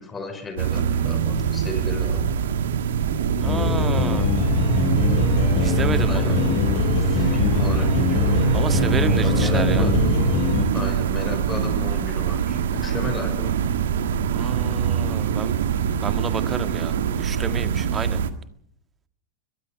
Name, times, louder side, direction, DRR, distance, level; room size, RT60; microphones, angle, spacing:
voice 1, 0.0-2.2 6.1-6.6 7.0-8.5 9.2-10.0 10.7-13.5 13.9-14.0, left 3 dB, 15° left, 6 dB, 6.0 m, -33 dB
sound 1, 0.6-18.3, right 8 dB, 60° right, 1.7 m, -23 dB
sound 2, 3.4-10.6, left 6 dB, 45° left, 5.4 m, -23 dB
voice 2, 3.4-4.3 5.6-6.4 8.5-9.9 14.3-15.5 16.0-18.2, right 6 dB, 20° right, 10 dB, 1.8 m, -30 dB
24.0 x 21.5 x 5.0 m, 0.68 s
figure-of-eight pair, 90°, 0 cm